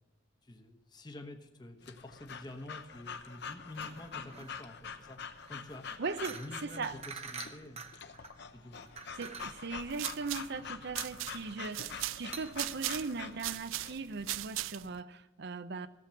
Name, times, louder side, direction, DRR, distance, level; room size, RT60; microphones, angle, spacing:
voice 1, 0.4-5.2 5.5-5.8 6.2-7.9 8.5-8.9, left 1 dB, 20° left, 1.1 m, -48 dB
Breathing / Dog, 1.8-14.0, left 6 dB, 60° left, 0.9 m, -46 dB
sound 1, 3.7-13.7, right 5 dB, 35° right, 0.9 m, -49 dB
voice 2, 6.0-6.9 9.2-15.9, right 4 dB, 60° right, 0.7 m, -39 dB
sound 2, 9.7-15.0, right 16 dB, 90° right, 0.4 m, -39 dB
14.5 x 7.6 x 7.0 m
head